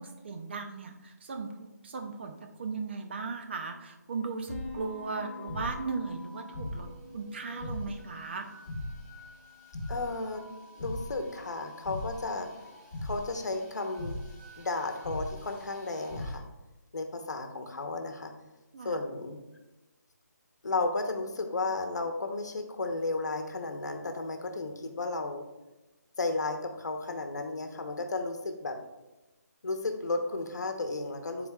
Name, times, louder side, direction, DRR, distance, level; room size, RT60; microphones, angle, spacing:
voice 1, 0.0-6.9 7.1-8.5 18.7-19.0, right 4 dB, 40° right, 5 dB, 0.6 m, -37 dB
sound 1, 4.5-16.4, left 1 dB, 15° left, 1.5 m, -41 dB
voice 2, 9.9-10.4 10.8-12.5 13.0-14.2 14.6-16.4 16.9-18.3 18.8-19.4 20.6-25.5 26.2-28.8 29.6-31.5, left 3 dB, 75° left, 5 dB, 1.0 m, -33 dB
10.5 x 4.1 x 2.4 m, 1.1 s
hypercardioid pair, 165°, 10 cm